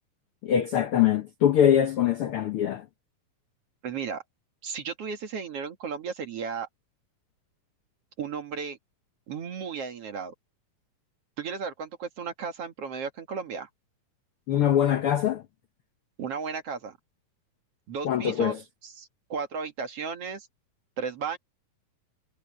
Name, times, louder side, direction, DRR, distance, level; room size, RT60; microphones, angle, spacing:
voice 1, 0.4-2.9 14.5-15.4 18.0-18.6, left 10 dB, 75° left, 1.2 m, -23 dB
voice 2, 3.8-4.2 4.6-6.7 8.2-8.8 9.3-10.3 11.4-13.7 16.2-17.0 17.9-18.6 18.8-20.5 21.0-21.4, right 6 dB, 50° right, 2.4 m, -34 dB
omnidirectional pair, 3.8 m